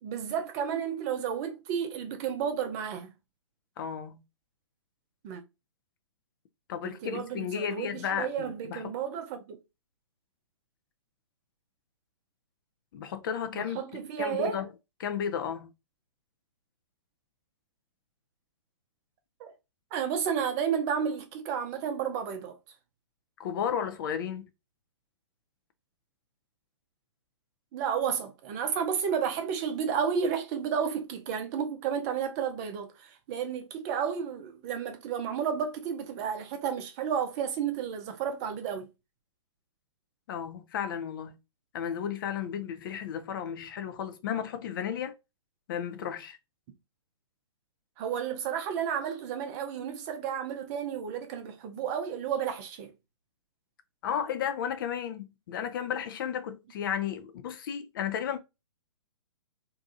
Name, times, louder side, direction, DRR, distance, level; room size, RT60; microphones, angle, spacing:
voice 1, 0.0-3.1 5.2-5.4 6.8-9.6 13.5-14.6 19.4-19.5 19.9-22.6 27.7-38.9 48.0-52.9, right 7 dB, 35° right, 0.6 m, -32 dB
voice 2, 3.8-4.2 6.7-8.9 12.9-13.8 14.2-14.7 15.0-15.7 23.4-24.5 40.3-41.4 41.7-45.2 45.7-46.4 54.0-58.4, left 8 dB, 45° left, 0.4 m, -33 dB
2.7 x 2.3 x 2.6 m
figure-of-eight pair, 120°, 16 cm